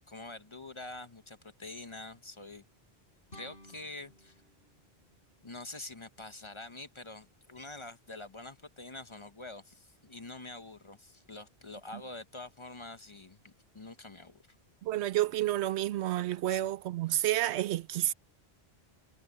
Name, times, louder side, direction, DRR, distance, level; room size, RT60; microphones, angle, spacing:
voice 1, 0.1-2.6 3.3-4.4 5.4-14.4 16.5-16.7, left 2 dB, 30° left, 0.7 m, -46 dB
sound 1, 3.3-6.3, left 1 dB, 65° left, 7.9 m, -57 dB
voice 2, 14.8-18.1, right 14 dB, 90° right, 0.9 m, -30 dB
omnidirectional pair, 1.1 m